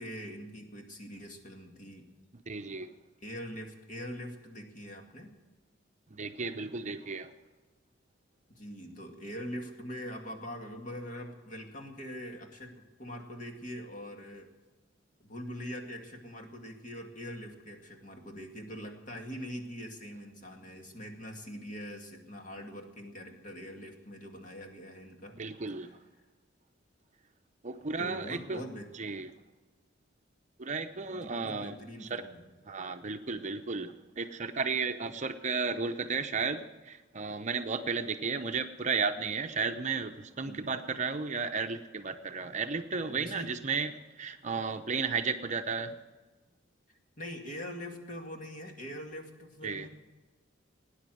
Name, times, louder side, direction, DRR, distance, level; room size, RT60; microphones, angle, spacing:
voice 1, 0.0-2.1 3.2-5.3 8.6-14.5 15.2-25.4 25.8-26.0 28.0-28.9 31.1-32.4 40.5-40.7 43.0-43.6 47.2-49.9, equal, 40° left, 3 dB, 2.2 m, -43 dB
voice 2, 2.5-2.9 6.1-7.3 25.4-25.9 27.6-28.6 29.0-29.3 30.6-31.7 32.1-32.2 32.7-43.9 44.2-46.0 49.6-49.9, right 4 dB, 40° right, 8 dB, 0.7 m, -33 dB
18.5 x 10.0 x 7.8 m, 1.2 s
head